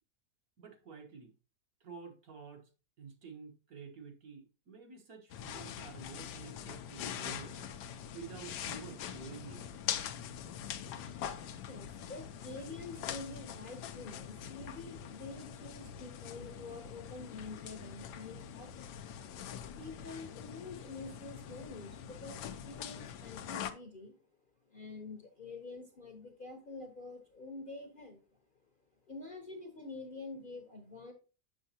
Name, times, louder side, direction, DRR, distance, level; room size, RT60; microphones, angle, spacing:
voice 1, 0.6-1.3 1.8-2.7 3.0-9.7, right 5 dB, 60° right, 3 dB, 1.5 m, -50 dB
sound 1, 5.3-23.7, left 9 dB, 80° left, 1.2 m, -43 dB
voice 2, 11.5-18.9 19.7-24.1 24.7-28.2 29.1-31.1, left 3 dB, 40° left, 3 dB, 0.9 m, -47 dB
7.0 x 6.3 x 2.8 m, 0.34 s
omnidirectional pair, 1.8 m